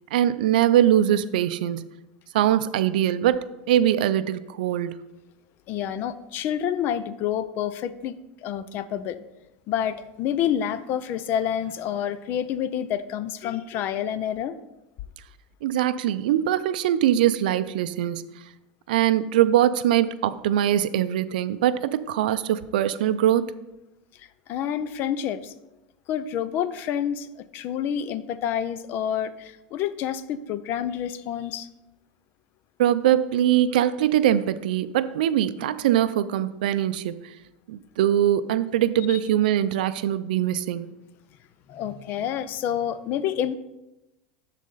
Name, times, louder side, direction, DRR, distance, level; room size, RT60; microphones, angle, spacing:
voice 1, 0.1-1.9 2.3-5.0 15.6-18.3 18.9-23.5 32.8-37.3 37.7-41.0, right 11 dB, 85° right, 14 dB, 0.4 m, -22 dB
voice 2, 5.7-8.1 8.4-9.2 9.7-14.6 24.2-25.5 26.1-31.7 39.1-39.2 41.7-43.5, left 9 dB, 45° left, 14 dB, 0.5 m, -28 dB
12.0 x 4.1 x 3.9 m, 0.97 s
supercardioid pair, 130°, 5 cm